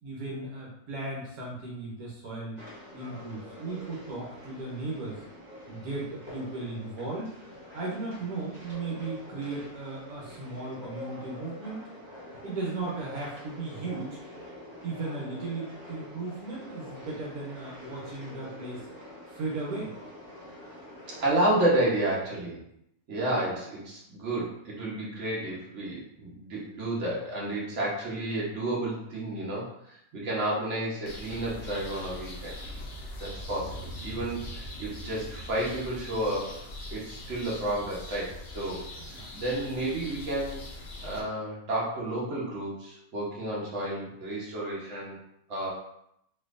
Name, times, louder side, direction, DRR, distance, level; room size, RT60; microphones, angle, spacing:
voice 1, 0.0-2.6 2.9-5.2 5.7-7.4 7.7-11.8 12.4-14.2 14.8-18.9 19.3-19.9 30.1-30.3 39.0-39.3, right 3 dB, 75° right, -5 dB, 1.3 m, -36 dB
sound 1, 2.6-21.3, equal, 35° right, 1.5 m, -46 dB
voice 2, 21.1-22.6 23.1-32.5 33.2-36.6 36.9-38.8 39.3-40.6 41.0-45.2 45.5-45.7, right 1 dB, 50° right, -6 dB, 1.3 m, -31 dB
sound 2, 31.1-41.2, left 1 dB, 60° left, 0.5 m, -41 dB
4.2 x 2.7 x 2.5 m, 0.76 s
omnidirectional pair, 1.6 m